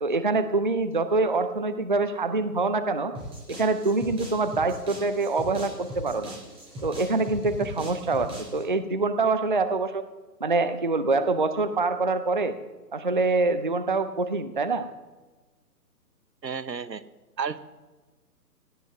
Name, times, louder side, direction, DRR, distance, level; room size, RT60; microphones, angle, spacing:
voice 1, 0.0-3.1 3.5-6.3 6.8-10.0 10.4-12.5 12.9-14.9, right 3 dB, 35° right, 12 dB, 0.4 m, -25 dB
sound 1, 3.1-8.6, equal, 10° right, 4.7 m, -39 dB
voice 2, 16.4-17.0 17.4-17.6, right 6 dB, 85° right, 15 dB, 0.9 m, -31 dB
16.5 x 7.6 x 7.0 m, 1.2 s
figure-of-eight pair, 135°, 49 cm